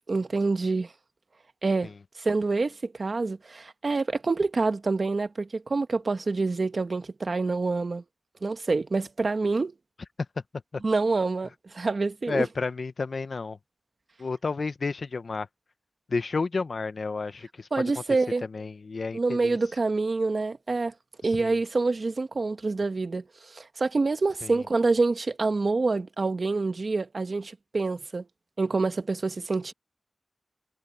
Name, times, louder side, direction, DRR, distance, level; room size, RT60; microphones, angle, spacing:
voice 1, 0.1-0.9 1.6-8.0 8.4-9.7 10.8-12.5 17.7-18.5 19.1-20.9 21.2-28.2 28.6-29.7, right 3 dB, 60° right, 1.4 m, -27 dB
voice 2, 12.3-13.6 14.2-15.5 16.1-17.9 18.4-19.6 21.2-21.6 24.4-24.6, left 4 dB, 70° left, 0.8 m, -31 dB
wide cardioid pair, 65°, 0 cm